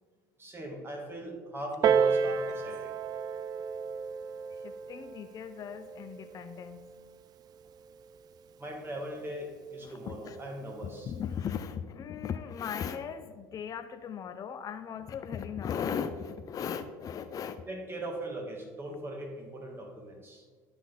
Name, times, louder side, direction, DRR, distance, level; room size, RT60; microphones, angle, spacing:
voice 1, 0.4-2.9 8.6-11.1 17.7-20.4, right 1 dB, 25° right, 0 dB, 2.2 m, -40 dB
Piano, 1.8-7.0 7.8-7.9, right 6 dB, 40° right, 0.3 m, -31 dB
voice 2, 4.5-6.9 9.8-10.4 10.8-17.6, left 7 dB, 35° left, 9 dB, 0.5 m, -37 dB
11.0 x 4.1 x 4.0 m, 1.5 s
hypercardioid pair, 70°, 10 cm